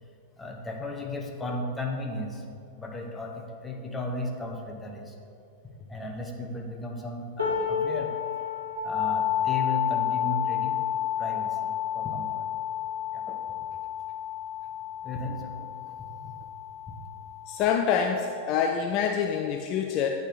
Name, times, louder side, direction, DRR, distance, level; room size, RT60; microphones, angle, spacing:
voice 1, 0.4-2.4 2.8-5.2 5.8-8.1 8.8-10.8 11.2-12.5 13.1-13.4 15.0-16.3 16.9-17.0, left 1 dB, 10° left, 1 dB, 0.9 m, -35 dB
sound 1, 7.4-13.5 14.1-14.3 14.6-15.4 16.3-16.4, left 6 dB, 85° right, 1.3 m, -35 dB
sound 2, 8.8-18.5, left 11 dB, 70° right, 1.5 m, -31 dB
voice 2, 17.5-20.1, left 7 dB, 40° left, 4 dB, 0.3 m, -26 dB
8.7 x 3.9 x 4.8 m, 2.5 s
figure-of-eight pair, 90°, 0 cm